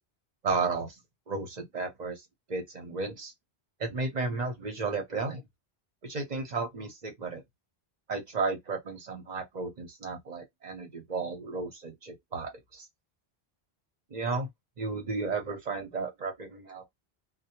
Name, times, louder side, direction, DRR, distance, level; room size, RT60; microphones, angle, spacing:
voice 1, 0.4-0.9 1.3-2.2 2.5-3.3 3.8-5.4 6.0-7.4 8.1-12.8 14.1-14.5 14.8-16.9, right 4 dB, 45° right, 0.8 m, -33 dB
2.1 x 2.1 x 2.8 m
omnidirectional pair, 1.1 m